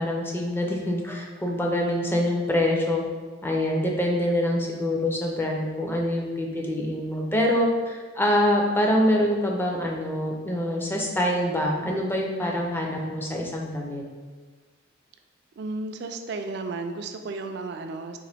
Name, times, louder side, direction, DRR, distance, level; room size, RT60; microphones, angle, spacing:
voice 1, 0.0-3.0 3.4-14.0, left 1 dB, 10° left, 0 dB, 0.4 m, -25 dB
voice 2, 15.6-18.2, right 3 dB, 55° right, 6 dB, 0.3 m, -33 dB
3.8 x 2.9 x 3.3 m, 1.4 s
head